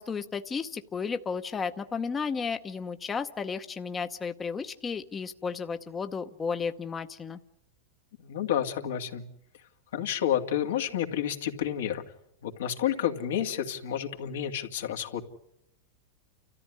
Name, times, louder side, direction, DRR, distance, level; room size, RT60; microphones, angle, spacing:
voice 1, 0.0-7.4, left 5 dB, 20° left, 8 dB, 0.9 m, -33 dB
voice 2, 8.2-9.2 9.9-12.0 12.4-15.2, left 10 dB, 80° left, 4 dB, 2.3 m, -30 dB
29.5 x 14.0 x 9.8 m, 0.81 s
hypercardioid pair, 130°, 0 cm